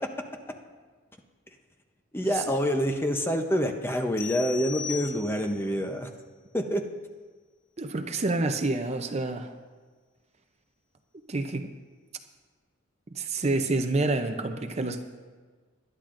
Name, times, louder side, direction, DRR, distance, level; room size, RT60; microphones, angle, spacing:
voice 1, 2.1-6.1 6.5-6.8, equal, 10° left, 4 dB, 0.7 m, -27 dB
sound 1, 4.2-5.7, left 8 dB, 65° left, 0.8 m, -38 dB
voice 2, 7.8-9.5 11.3-11.7 13.1-15.0, right 2 dB, 30° right, 7 dB, 0.5 m, -28 dB
20.0 x 12.0 x 2.6 m, 1.5 s
head